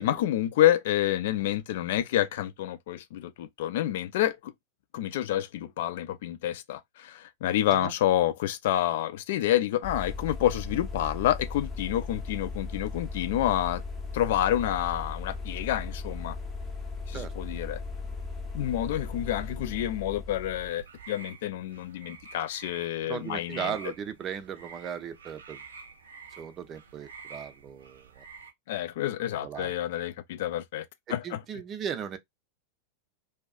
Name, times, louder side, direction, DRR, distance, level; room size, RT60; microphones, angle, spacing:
voice 1, 0.0-4.5 4.9-13.8 14.1-16.4 17.1-17.8 18.5-23.7 28.7-31.4, left 12 dB, 55° left, 0.3 m, -28 dB
sound 1, 9.8-20.7, left 3 dB, 20° left, 0.7 m, -37 dB
sound 2, 20.4-28.5, right 5 dB, 70° right, 0.6 m, -49 dB
voice 2, 23.0-25.6 26.4-28.2 29.4-29.7 31.2-32.2, right 8 dB, 30° right, 0.4 m, -37 dB
2.6 x 2.2 x 2.4 m
figure-of-eight pair, 90°, 0 cm